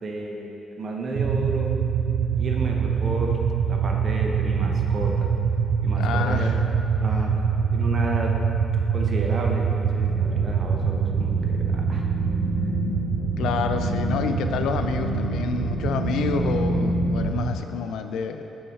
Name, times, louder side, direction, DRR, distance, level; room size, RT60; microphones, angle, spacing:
voice 1, 0.0-1.8 2.4-5.3 5.8-6.5 7.0-8.3 8.9-12.0, right 2 dB, 45° right, 1 dB, 0.8 m, -32 dB
sound 1, 1.1-17.6, right 6 dB, 80° right, 0.3 m, -25 dB
voice 2, 6.0-6.6 13.4-18.6, left 6 dB, 80° left, 7 dB, 0.3 m, -28 dB
sound 2, 10.1-17.3, left 1 dB, 15° left, 1.0 m, -29 dB
5.6 x 4.7 x 4.3 m, 2.9 s
cardioid pair, 90°, 0 cm